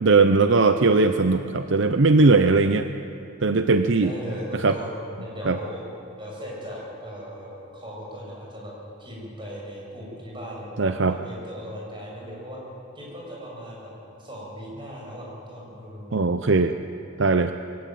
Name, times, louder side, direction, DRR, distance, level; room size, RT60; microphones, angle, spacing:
voice 1, 0.0-2.9 3.4-4.1 4.5-4.8 5.5-5.6 10.8-11.2 16.1-16.8 17.2-17.5, right 3 dB, 60° right, 9 dB, 0.6 m, -19 dB
voice 2, 4.0-5.8 6.2-8.7 9.0-12.6 12.9-13.9 14.2-16.2, equal, 20° right, -3 dB, 7.2 m, -37 dB
23.0 x 17.0 x 9.3 m, 2.8 s
head